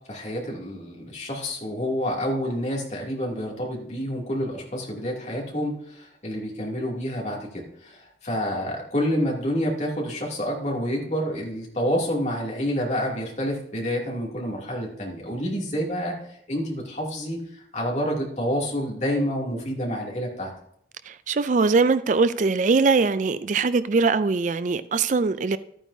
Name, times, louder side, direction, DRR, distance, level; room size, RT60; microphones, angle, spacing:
voice 1, 0.1-16.2 16.5-20.5, equal, 40° left, 2.7 m, -28 dB
voice 2, 21.1-25.6, right 4 dB, 45° right, 0.4 m, -21 dB
12.5 x 9.2 x 2.7 m
head